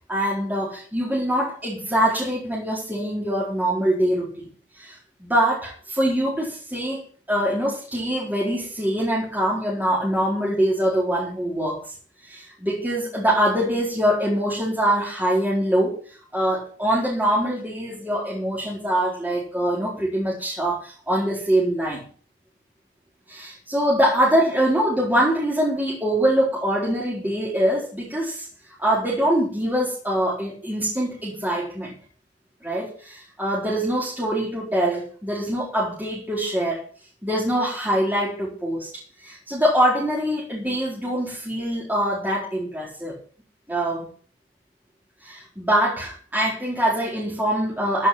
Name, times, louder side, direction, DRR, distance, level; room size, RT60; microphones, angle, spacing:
voice 1, 0.1-4.5 4.8-7.0 7.3-11.8 12.2-15.9 16.3-22.0 23.3-28.5 28.8-31.9 32.6-36.8 37.2-43.2 43.7-44.1 45.2-48.1, right 1 dB, 10° right, -6 dB, 4.3 m, -23 dB
14.0 x 6.8 x 7.7 m, 0.43 s
head